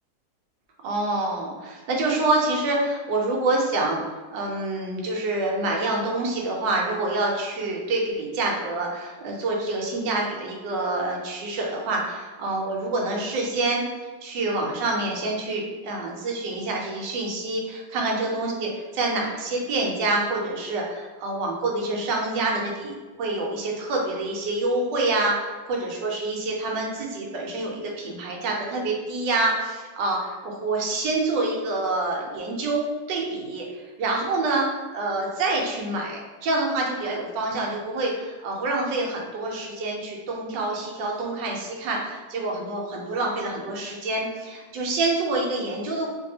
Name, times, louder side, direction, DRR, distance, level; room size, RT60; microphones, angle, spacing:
voice 1, 0.8-13.8 14.2-46.1, right 2 dB, 70° right, -1 dB, 1.2 m, -27 dB
3.2 x 2.6 x 2.7 m, 1.3 s
omnidirectional pair, 2.1 m